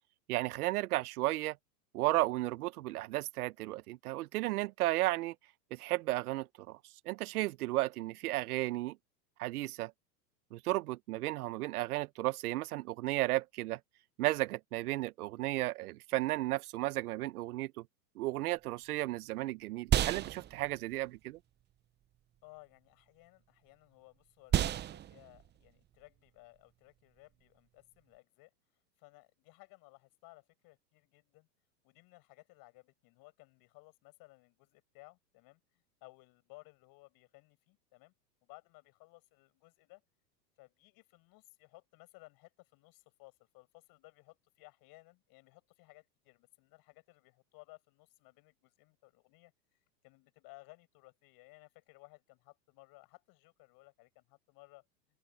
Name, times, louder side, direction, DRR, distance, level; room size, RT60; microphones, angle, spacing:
voice 1, 0.3-1.6 1.9-5.3 5.7-6.8 7.0-9.0 9.4-9.9 10.5-13.8 14.2-17.8 18.2-21.4, right 17 dB, 60° right, 1.2 m, -34 dB
sound 1, 18.5-28.2, right 12 dB, 20° right, 0.9 m, -37 dB
voice 2, 22.4-28.5 29.0-31.5 31.8-38.1 38.4-40.0 40.6-49.5 50.0-54.9, left 23 dB, 45° left, 7.1 m, -59 dB
open air
hypercardioid pair, 115°, 49 cm